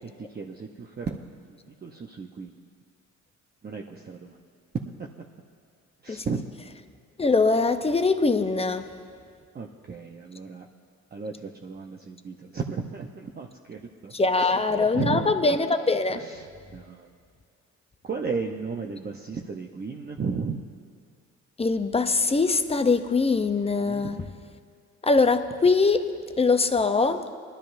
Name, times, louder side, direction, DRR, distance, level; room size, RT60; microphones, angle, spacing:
voice 1, 0.0-1.3 1.7-2.6 3.6-4.4 4.7-5.1 6.0-6.4 9.5-10.7 11.1-15.3 16.1-17.1 18.0-20.7 23.9-24.3, right 5 dB, 30° right, 1 dB, 0.8 m, -34 dB
voice 2, 7.2-9.0 14.1-16.2 21.6-24.2 25.0-26.1 26.4-27.3, left 3 dB, 20° left, 9 dB, 0.6 m, -22 dB
21.5 x 12.5 x 2.6 m, 2.2 s
cardioid pair, 90°, 30 cm